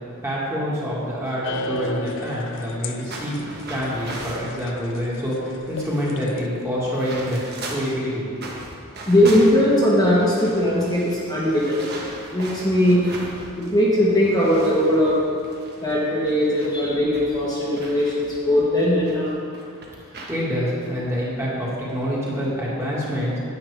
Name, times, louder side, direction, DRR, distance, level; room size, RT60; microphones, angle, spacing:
voice 1, 0.2-5.4 5.7-7.4 7.7-8.2 20.3-23.4, equal, 15° right, -7 dB, 1.9 m, -26 dB
sound 1, 1.4-6.5, left 2 dB, 60° left, 0.4 m, -35 dB
sound 2, 3.1-4.5 5.2-5.3 5.6-8.0 8.3-13.8 14.1-19.1 19.5-20.4 20.8-21.0 21.5-21.8, right 2 dB, 50° right, 1.3 m, -38 dB
voice 2, 9.1-11.9 12.3-13.1 13.6-15.2 15.8-19.3, left 1 dB, 15° left, -7 dB, 1.2 m, -19 dB
10.0 x 7.9 x 3.4 m, 2.4 s
head